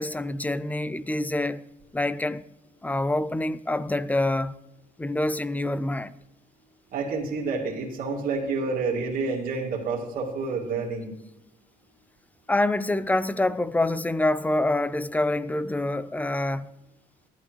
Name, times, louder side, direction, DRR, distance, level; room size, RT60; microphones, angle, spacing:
voice 1, 0.0-1.6 1.9-2.4 2.8-4.5 5.0-6.1 12.5-16.7, left 2 dB, 10° left, 0.5 m, -26 dB
voice 2, 6.9-11.1, right 4 dB, 55° right, 2.3 m, -29 dB
14.5 x 11.0 x 3.1 m
cardioid pair, 110°, 17 cm